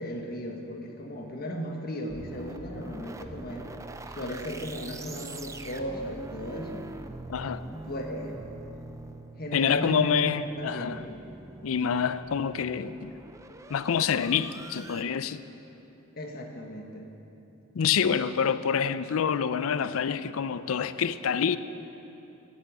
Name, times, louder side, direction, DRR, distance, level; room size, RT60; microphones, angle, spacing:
voice 1, 0.0-3.7 4.1-6.9 7.7-8.4 9.4-10.3 10.6-11.0 16.2-17.1, equal, 50° left, 2 dB, 1.4 m, -36 dB
sound 1, 2.1-15.0, right 2 dB, 15° right, 0.4 m, -44 dB
voice 2, 7.3-7.6 9.5-11.0 11.6-13.1 13.7-15.4 17.7-21.6, left 7 dB, 80° left, 14 dB, 0.4 m, -27 dB
12.0 x 8.4 x 7.6 m, 2.9 s
head